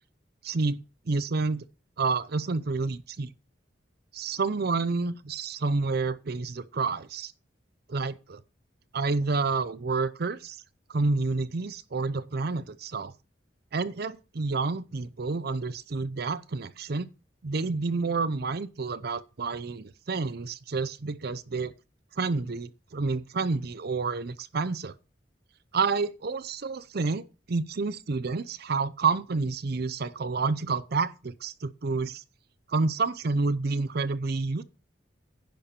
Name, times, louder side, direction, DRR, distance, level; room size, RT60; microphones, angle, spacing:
voice 1, 0.4-1.7 2.0-3.3 4.1-7.3 7.9-8.4 8.9-10.6 10.9-13.1 13.7-17.1 17.4-21.7 22.2-24.9 25.7-32.2 32.7-34.6, right 4 dB, 55° right, 0.6 m, -29 dB
10.5 x 4.4 x 6.7 m
head